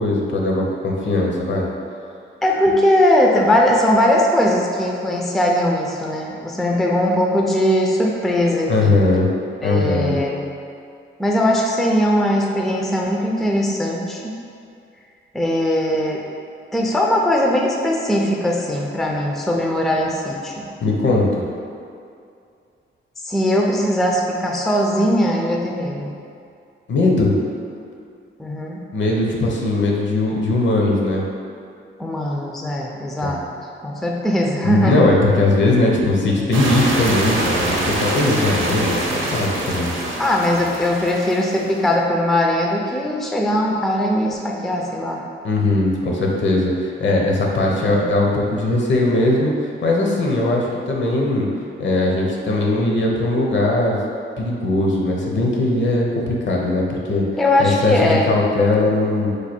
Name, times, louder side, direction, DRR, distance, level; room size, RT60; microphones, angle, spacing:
voice 1, 0.0-1.7 2.7-2.8 8.7-9.3 9.6-10.2 20.8-21.5 26.9-27.4 28.9-31.2 33.2-33.4 34.6-39.9 45.4-51.5 51.8-54.0 54.4-57.2 57.6-59.3, left 2 dB, 60° left, -1 dB, 0.7 m, -19 dB
voice 2, 2.4-9.0 9.6-10.4 11.2-14.4 15.3-16.2 16.7-20.7 23.2-26.2 28.4-28.8 32.0-33.4 33.8-35.0 40.2-45.2 47.7-48.0 57.4-58.3, left 1 dB, ahead, -1 dB, 0.4 m, -20 dB
sound 1, 36.5-41.9, right 1 dB, 65° right, 0.7 m, -24 dB
3.2 x 2.3 x 4.3 m, 2.4 s
cardioid pair, 75°, 21 cm